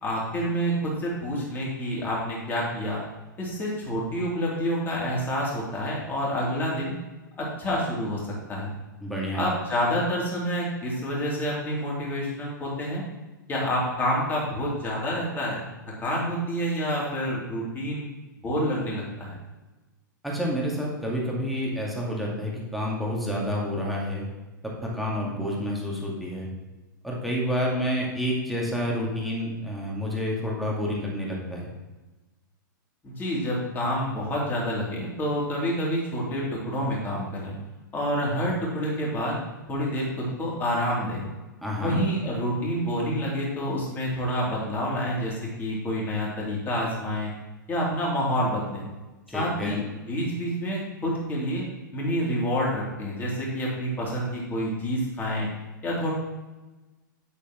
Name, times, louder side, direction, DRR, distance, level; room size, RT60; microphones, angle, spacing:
voice 1, 0.0-3.0 3.4-6.9 7.4-8.7 9.3-13.0 13.5-15.6 16.0-18.0 18.4-19.4 33.0-37.5 37.9-39.4 39.7-41.2 41.8-47.3 47.7-48.8 49.3-51.6 51.9-55.5 55.8-56.1, equal, 20° left, -4 dB, 3.1 m, -28 dB
voice 2, 9.0-9.4 20.2-24.3 24.6-26.5 27.0-31.7 41.6-42.0 49.3-49.8, equal, ahead, -3 dB, 2.1 m, -29 dB
9.4 x 8.2 x 3.1 m, 1.2 s
figure-of-eight pair, 105°, 11 cm